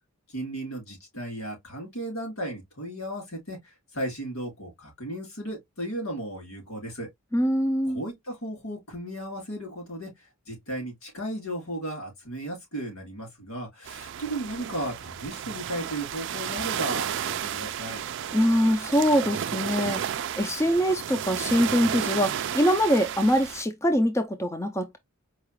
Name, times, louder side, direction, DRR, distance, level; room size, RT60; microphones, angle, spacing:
voice 1, 0.3-7.1 7.9-18.0, right 1 dB, 90° left, 3.3 m, -35 dB
voice 2, 7.3-8.0 18.3-20.0 20.4-25.0, equal, 15° left, 0.4 m, -23 dB
sound 1, 13.9-23.6, right 9 dB, 60° right, 0.3 m, -32 dB
4.7 x 2.3 x 3.0 m
head